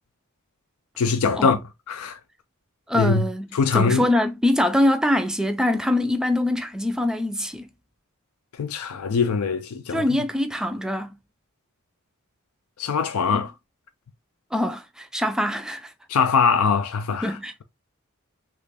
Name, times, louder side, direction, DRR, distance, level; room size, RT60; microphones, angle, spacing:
voice 1, 1.0-1.6 1.9-2.2 2.9-3.3 3.5-4.1 8.6-10.1 12.8-13.5 16.1-17.6, left 5 dB, 85° left, 0.4 m, -22 dB
voice 2, 2.9-7.7 9.9-11.1 13.3-13.4 14.5-15.9 17.2-17.6, left 1 dB, 5° right, 0.3 m, -23 dB
3.1 x 2.4 x 3.3 m
head